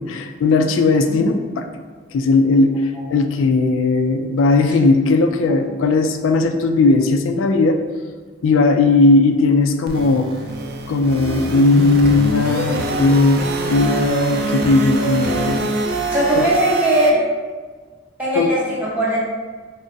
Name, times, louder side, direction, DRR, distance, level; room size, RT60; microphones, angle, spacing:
voice 1, 0.0-1.7 2.1-7.8 8.4-10.3 10.9-13.4 13.7-15.7 16.4-16.5 18.3-18.5, left 3 dB, 80° left, 7 dB, 0.3 m, -17 dB
sound 1, 9.9-17.1, right 3 dB, 50° right, 0.4 m, -24 dB
voice 2, 16.1-17.1 18.2-19.2, right 1 dB, 10° right, -7 dB, 0.9 m, -19 dB
6.1 x 2.0 x 2.6 m, 1.5 s
head